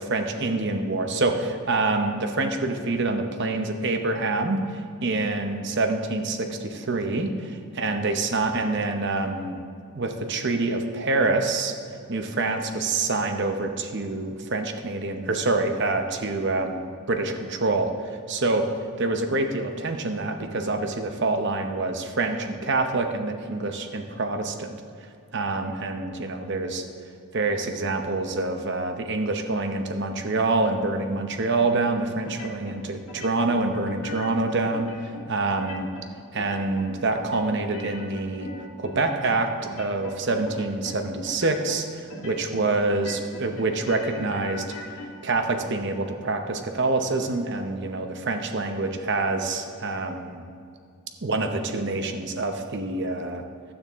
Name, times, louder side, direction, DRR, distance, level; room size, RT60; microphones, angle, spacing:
voice 1, 0.0-9.6 9.9-11.7 12.1-18.7 19.0-24.7 25.3-26.8 27.3-35.9 36.3-38.5 38.8-44.6 45.2-50.4 51.2-53.4, right 3 dB, 50° right, 5 dB, 0.8 m, -26 dB
sound 1, 32.2-32.8 33.1-34.4 34.7-35.2 35.5-36.1 36.4-36.9 37.2-39.4 39.6-40.2 40.5-41.0 41.3-41.8 42.1-42.7 42.9-45.1, left 2 dB, 75° left, 1.7 m, -40 dB
12.5 x 8.6 x 3.6 m, 2.3 s
head